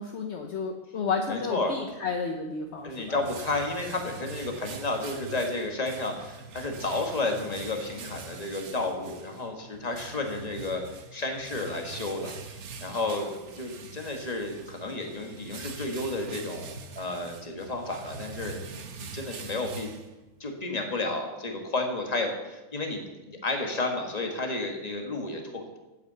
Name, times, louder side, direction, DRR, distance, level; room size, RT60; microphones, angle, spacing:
voice 1, 0.0-3.2, left 5 dB, 55° left, 3 dB, 1.1 m, -32 dB
voice 2, 1.3-1.7 2.8-10.8 11.1-19.9 20.4-25.8, left 2 dB, 30° left, 2 dB, 1.6 m, -32 dB
sound 1, 2.6-20.5, right 5 dB, 60° right, 1.2 m, -43 dB
8.4 x 8.4 x 8.0 m, 1.1 s
omnidirectional pair, 1.5 m